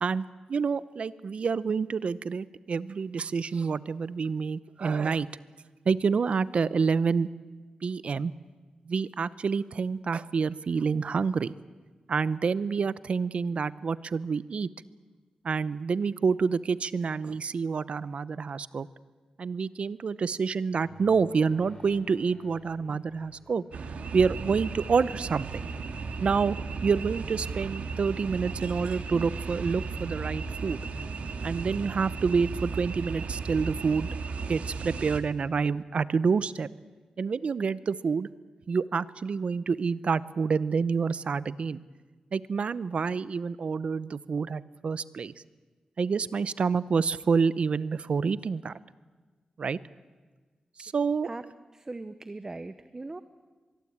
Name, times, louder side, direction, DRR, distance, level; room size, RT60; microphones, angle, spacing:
voice 1, 0.0-5.3 5.9-7.3 7.8-8.3 8.9-11.5 12.1-14.7 15.4-18.9 19.4-23.6 24.1-25.6 26.2-26.6 26.8-30.8 31.4-34.1 34.5-36.7 37.2-38.3 38.7-41.8 42.3-45.3 46.0-48.7 49.6-49.8 50.8-51.3, right 5 dB, 55° right, 17 dB, 0.7 m, -28 dB
sound 1, 20.7-27.8 29.8-34.2, left 1 dB, 20° left, 5.9 m, -54 dB
sound 2, 23.7-35.2, right 4 dB, 85° right, 2.0 m, -35 dB
voice 2, 51.7-53.2, right 2 dB, 25° right, 12 dB, 0.8 m, -39 dB
24.5 x 22.0 x 8.7 m, 1.4 s
wide cardioid pair, 115°, 2 cm